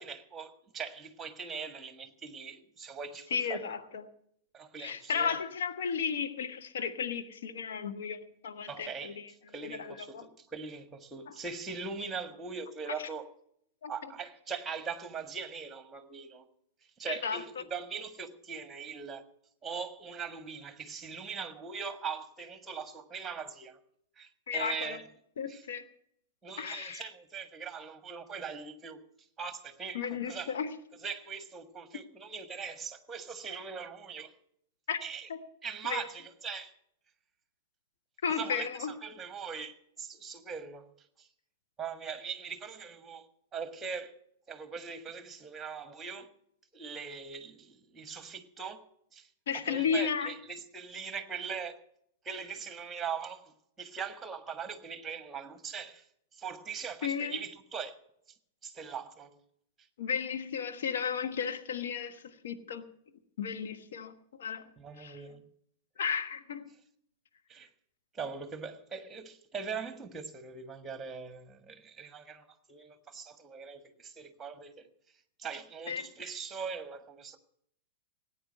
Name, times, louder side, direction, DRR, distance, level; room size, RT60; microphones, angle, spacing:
voice 1, 0.0-3.7 4.5-5.4 8.7-13.3 13.9-16.4 17.0-19.3 19.6-23.8 24.2-25.1 25.5-25.7 26.4-29.1 29.4-30.6 31.0-34.3 35.0-35.3 35.6-36.7 38.3-40.9 41.2-41.3 41.8-44.1 44.5-46.3 46.7-49.3 49.5-51.8 52.2-56.0 56.3-58.0 58.6-59.4 64.8-65.5 67.5-67.7 68.1-74.9 75.4-77.4, right 6 dB, 15° right, 1.5 m, -41 dB
voice 2, 3.3-4.0 4.8-9.1 9.6-10.2 13.8-13.9 17.1-17.4 24.5-25.0 25.4-25.8 26.6-27.0 29.9-30.7 34.9-35.0 35.3-35.4 35.9-36.1 38.2-38.9 49.5-50.3 57.0-57.4 60.0-62.8 63.4-64.1 64.4-64.7 65.0-65.2 66.0-66.7 75.9-76.1, left 6 dB, 60° left, 1.2 m, -34 dB
18.0 x 9.1 x 6.4 m
figure-of-eight pair, 95°, 0 cm